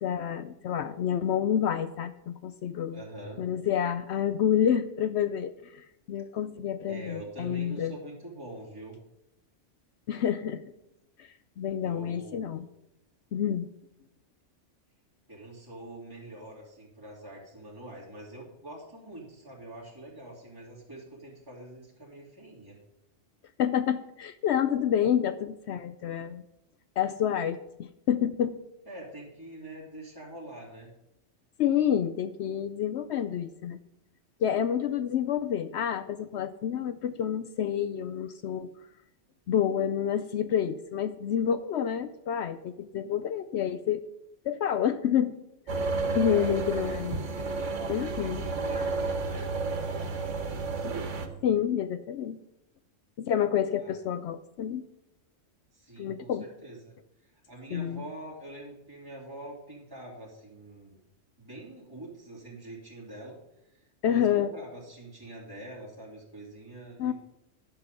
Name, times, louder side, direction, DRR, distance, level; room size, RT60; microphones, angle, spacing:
voice 1, 0.0-3.0 3.4-7.9 10.1-10.6 11.2-11.3 11.6-12.6 13.3-13.7 23.6-26.4 27.0-28.6 31.6-33.8 34.4-38.7 39.5-44.0 44.4-45.4 45.7-45.8 46.1-47.2 47.9-48.4 50.8-51.0 51.4-52.4 53.2-54.8 56.0-56.5 57.7-58.0 64.0-64.5 67.0-67.1, left 9 dB, 70° left, 11 dB, 0.8 m, -28 dB
voice 2, 2.9-3.5 6.9-9.0 11.8-12.6 15.3-22.8 28.9-30.9 46.0-50.9 53.8-54.0 55.7-56.9 57.2-61.0 61.4-63.4 64.0-67.1, right 1 dB, 15° right, -5 dB, 2.9 m, -45 dB
sound 1, 45.7-51.3, right 3 dB, 90° right, 1.4 m, -31 dB
11.0 x 5.8 x 6.8 m, 0.87 s
omnidirectional pair, 1.2 m